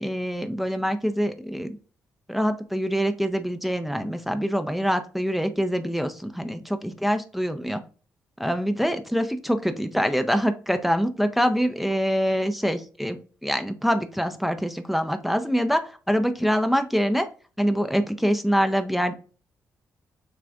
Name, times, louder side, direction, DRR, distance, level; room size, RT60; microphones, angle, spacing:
voice 1, 0.0-1.8 2.3-7.8 8.4-17.3 17.6-19.1, equal, ahead, 7 dB, 0.6 m, -25 dB
6.7 x 2.5 x 2.4 m, 0.37 s
hypercardioid pair, 45°, 7 cm